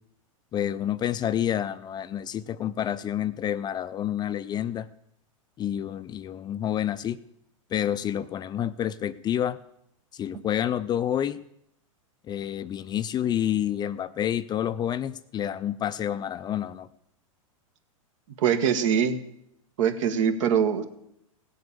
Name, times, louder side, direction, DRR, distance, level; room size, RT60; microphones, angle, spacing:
voice 1, 0.5-4.9 5.6-7.2 7.7-9.6 10.1-11.4 12.3-16.9, left 10 dB, 25° left, 14 dB, 0.5 m, -28 dB
voice 2, 18.4-19.2 19.8-20.8, right 8 dB, 65° right, 8 dB, 1.8 m, -23 dB
16.5 x 7.8 x 6.8 m, 0.77 s
hypercardioid pair, 110°, 18 cm